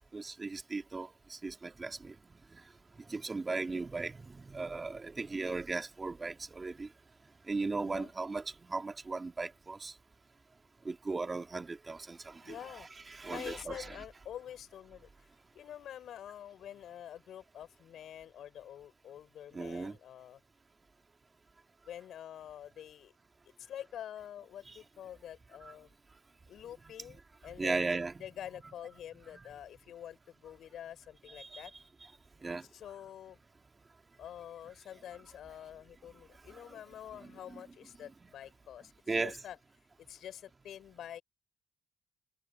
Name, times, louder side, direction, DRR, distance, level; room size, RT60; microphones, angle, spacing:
voice 1, 0.1-2.2 2.5-2.6 3.0-6.9 7.5-9.9 10.8-12.6 13.1-13.9 19.5-20.0 27.1-27.2 27.4-28.1 29.3-29.4 31.4-31.6 32.4-32.7 36.5-36.8 37.2-37.6 39.1-39.3, right 3 dB, 25° right, 2.4 m, -37 dB
voice 2, 7.8-8.1 12.4-12.9 13.2-15.3 15.5-20.4 21.8-23.1 23.6-25.9 26.5-31.7 32.7-33.4 34.2-39.6 40.1-41.2, left 10 dB, 70° left, 6.0 m, -47 dB
cardioid pair, 90°, 0 cm